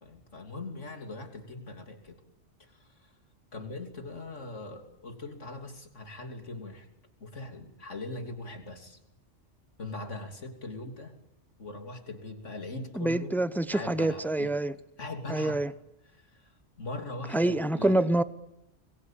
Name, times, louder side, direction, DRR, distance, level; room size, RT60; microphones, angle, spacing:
voice 1, 0.0-2.2 3.5-6.9 7.2-9.0 9.8-11.1 11.6-13.3 13.7-14.5 15.0-15.6 16.1-16.4 16.8-18.1, left 2 dB, 80° left, 5 dB, 3.5 m, -40 dB
voice 2, 12.9-14.7 15.3-15.7 17.3-18.2, right 1 dB, ahead, 15 dB, 0.7 m, -26 dB
26.0 x 22.0 x 9.0 m, 0.82 s
omnidirectional pair, 1.2 m